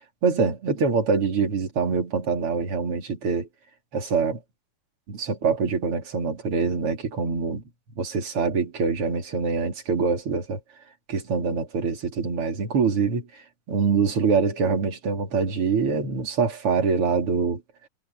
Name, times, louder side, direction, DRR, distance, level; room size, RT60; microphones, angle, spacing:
voice 1, 0.2-3.5 3.9-4.4 5.1-7.6 8.0-10.6 11.1-13.4 13.7-17.6, right 5 dB, 40° right, 3.9 m, -24 dB
omnidirectional pair, 4.2 m